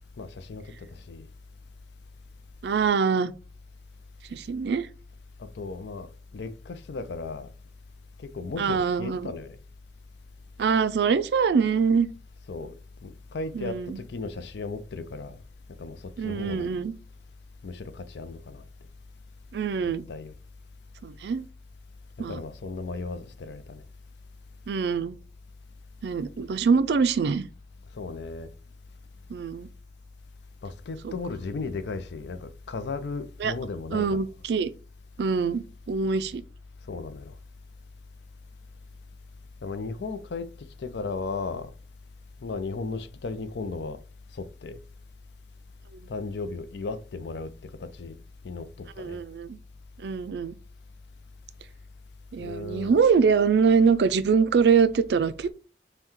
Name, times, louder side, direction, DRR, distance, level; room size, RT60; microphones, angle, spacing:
voice 1, 0.2-1.3 5.4-7.5 8.2-9.6 12.5-12.7 13.0-15.4 15.8-16.7 17.6-18.6 19.8-20.3 22.3-23.8 28.0-28.5 30.6-34.2 36.9-37.3 39.6-41.7 42.4-44.0 44.3-44.8 46.1-48.2 48.4-49.2 52.4-53.0, left 3 dB, 70° left, 0.4 m, -36 dB
voice 2, 2.6-3.3 4.3-4.9 8.6-9.3 10.6-12.1 13.5-14.0 16.2-16.9 19.5-20.1 21.0-21.4 22.2-22.4 24.7-25.2 26.0-27.5 29.3-29.7 31.0-31.1 33.4-33.5 33.9-34.7 35.2-36.4 49.0-49.6 50.0-50.5 52.3-55.5, right 5 dB, 65° right, 0.4 m, -24 dB
5.5 x 2.2 x 3.0 m
head